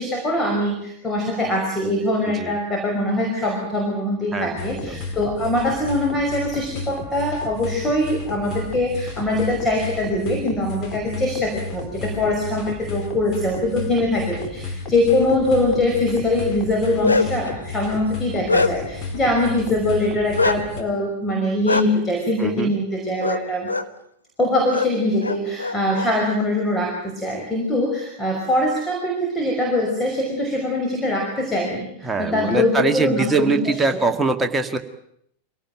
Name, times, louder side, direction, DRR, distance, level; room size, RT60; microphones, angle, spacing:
voice 1, 0.0-23.7 24.4-33.8, left 1 dB, 15° left, 1 dB, 5.5 m, -23 dB
voice 2, 2.3-2.6 4.3-5.0 22.4-22.7 32.0-34.8, right 3 dB, 10° right, 5 dB, 2.0 m, -23 dB
sound 1, 4.6-20.8, left 4 dB, 35° left, 3.9 m, -33 dB
Bark, 16.7-17.5 18.0-19.0 20.4-20.6 21.7-21.8 23.2-23.4 23.7-23.9 24.7-24.9 25.2-26.1, left 3 dB, 80° left, 1.2 m, -22 dB
25.0 x 18.0 x 9.1 m, 0.72 s
figure-of-eight pair, 90°, 0 cm